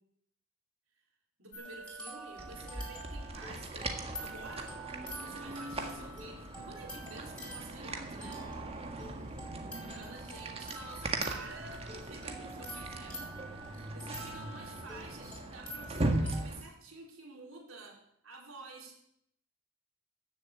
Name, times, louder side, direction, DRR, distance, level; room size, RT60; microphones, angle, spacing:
voice 1, 1.4-4.8 5.2-8.4 9.7-19.2, right 3 dB, 70° right, -1 dB, 4.5 m, -50 dB
sound 1, 1.5-16.5, right 1 dB, 5° left, 4.1 m, -47 dB
sound 2, 2.4-16.6, right 2 dB, 30° right, 1.7 m, -39 dB
14.0 x 7.3 x 8.6 m, 0.73 s
head